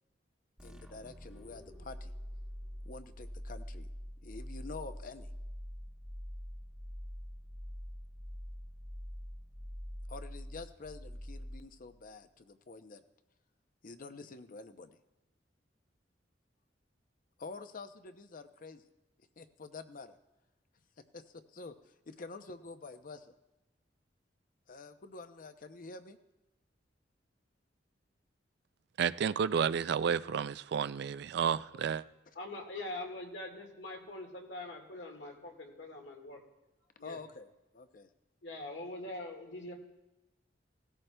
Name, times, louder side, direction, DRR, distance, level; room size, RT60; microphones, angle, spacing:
voice 1, 0.6-2.1 2.8-3.9 4.2-5.3 10.1-13.0 13.8-15.0 17.4-18.8 19.4-20.2 21.1-23.3 24.7-26.2 31.5-31.8 37.0-38.1, left 3 dB, 50° left, 10 dB, 0.6 m, -48 dB
sound 1, 0.6-12.0, equal, 5° right, 1.1 m, -45 dB
voice 2, 29.0-32.0, right 7 dB, 65° right, 15 dB, 0.3 m, -31 dB
voice 3, 32.4-36.4 37.0-37.2 38.4-39.7, left 2 dB, 90° left, 1 dB, 1.7 m, -43 dB
17.5 x 13.5 x 2.2 m, 0.99 s
head